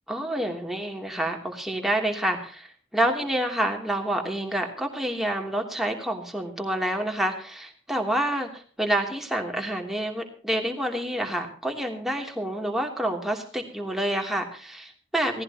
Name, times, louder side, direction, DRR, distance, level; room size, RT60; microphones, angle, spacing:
voice 1, 0.1-15.4, right 1 dB, ahead, 2 dB, 2.9 m, -28 dB
18.0 x 16.5 x 2.9 m, 0.42 s
head